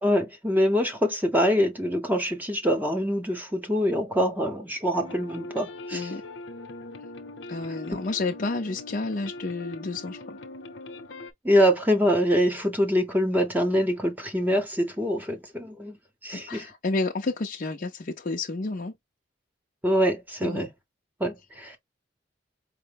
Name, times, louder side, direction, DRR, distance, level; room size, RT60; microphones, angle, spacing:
voice 1, 0.0-6.1 11.4-16.0 16.2-16.7 19.8-20.7 21.2-21.8, equal, 10° right, 0.8 m, -24 dB
sound 1, 4.9-11.3, left 2 dB, 75° left, 0.8 m, -41 dB
voice 2, 5.9-6.2 7.5-10.4 16.3-18.9 20.4-20.7, left 3 dB, 45° left, 0.6 m, -30 dB
4.9 x 2.1 x 3.4 m
head